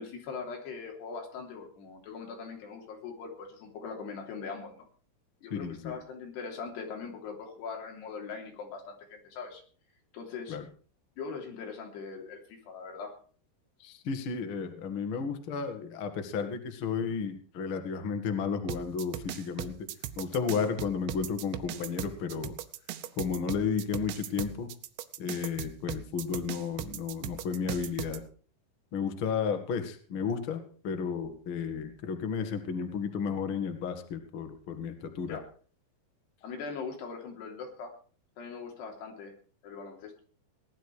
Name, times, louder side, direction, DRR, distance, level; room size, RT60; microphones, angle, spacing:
voice 1, 0.0-4.9 5.4-9.6 10.1-10.6 11.2-13.2 35.3-35.4 36.4-37.9 38.4-39.3 39.6-40.2, left 5 dB, 60° left, 1 dB, 5.2 m, -41 dB
voice 2, 5.5-5.9 10.5-10.6 13.8-19.8 20.2-22.6 23.2-24.7 25.2-28.2 28.9-35.4, left 6 dB, 90° left, 7 dB, 1.1 m, -33 dB
sound 1, 18.7-28.2, right 13 dB, 75° right, 3.0 m, -38 dB
19.0 x 11.5 x 4.9 m, 0.43 s
omnidirectional pair, 5.6 m